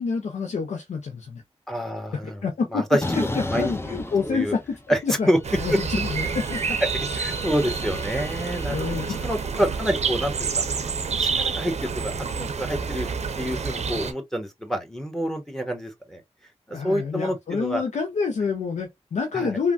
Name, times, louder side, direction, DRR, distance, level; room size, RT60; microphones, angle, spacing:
voice 1, 0.0-1.4 2.2-2.8 3.1-4.6 5.0-5.3 5.6-6.8 8.7-9.1 16.7-19.7, left 5 dB, 85° left, 0.5 m, -27 dB
voice 2, 1.7-2.4 2.7-3.2 3.5-4.0 4.2-4.5 4.9-5.0 5.3-5.4 7.1-10.6 11.2-13.1 13.4-16.2 16.7-17.8 19.3-19.6, equal, 5° left, 1.1 m, -27 dB
sound 1, 3.0-5.0 5.3-9.6, left 2 dB, 20° left, 0.6 m, -35 dB
sound 2, 5.4-14.1, right 5 dB, 70° right, 0.5 m, -28 dB
3.2 x 2.2 x 2.5 m
cardioid pair, 40°, 12 cm